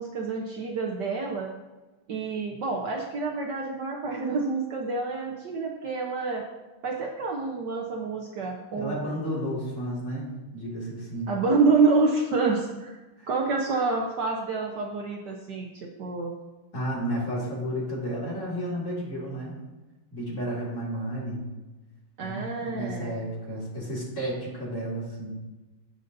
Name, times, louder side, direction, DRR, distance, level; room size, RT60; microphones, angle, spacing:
voice 1, 0.0-1.5 2.1-6.4 6.8-9.0 11.3-13.0 13.3-16.3 22.2-23.2, right 4 dB, 60° right, 0 dB, 1.3 m, -27 dB
voice 2, 8.7-11.3 13.2-13.3 16.7-19.5 20.1-21.5 22.2-25.3, equal, 35° left, -4 dB, 2.6 m, -32 dB
16.5 x 6.7 x 2.6 m, 1.1 s
omnidirectional pair, 2.4 m